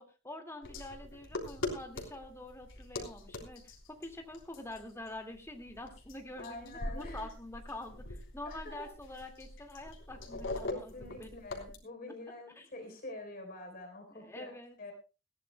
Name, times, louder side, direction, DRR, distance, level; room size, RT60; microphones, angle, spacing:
voice 1, 0.0-11.4 12.6-12.7 14.1-14.8, left 2 dB, 15° left, 4 dB, 2.0 m, -46 dB
sound 1, 0.6-11.8, left 2 dB, 80° left, 3.5 m, -43 dB
voice 2, 6.4-7.3 8.5-8.9 10.7-14.5 14.8-14.9, left 2 dB, 50° left, 4 dB, 3.8 m, -46 dB
20.5 x 15.5 x 2.2 m, 0.30 s
head